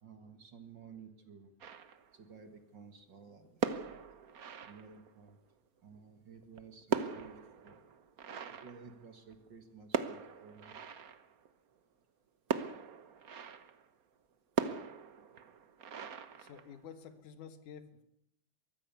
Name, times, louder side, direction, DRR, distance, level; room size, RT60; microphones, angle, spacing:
voice 1, 0.0-1.5 2.1-4.0 4.7-5.4 5.8-7.4 7.6-7.8 8.5-10.8, right 5 dB, 45° right, 8 dB, 2.0 m, -54 dB
sound 1, 1.6-2.3 3.5-5.3 6.4-9.5 9.9-11.5 12.5-13.9 14.6-17.1, right 6 dB, 75° right, 0.8 m, -39 dB
voice 2, 16.4-18.0, left 7 dB, 90° left, 11 dB, 3.0 m, -50 dB
23.5 x 14.5 x 8.3 m, 0.75 s
omnidirectional pair, 3.4 m